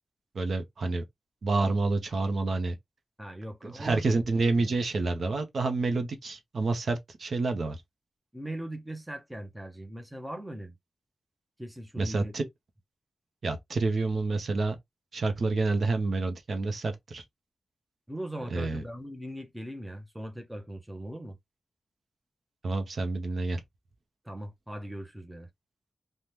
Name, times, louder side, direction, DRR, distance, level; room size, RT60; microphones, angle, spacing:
voice 1, 0.3-1.0 1.4-2.7 3.6-7.8 12.0-12.4 13.4-14.8 15.1-17.2 18.5-18.8 22.6-23.6, right 3 dB, 55° right, 0.6 m, -28 dB
voice 2, 3.2-4.2 4.5-4.8 8.3-10.8 11.6-12.3 18.1-21.4 24.2-25.5, right 1 dB, 5° right, 0.6 m, -39 dB
3.4 x 2.1 x 2.9 m
wide cardioid pair, 175°, 0 cm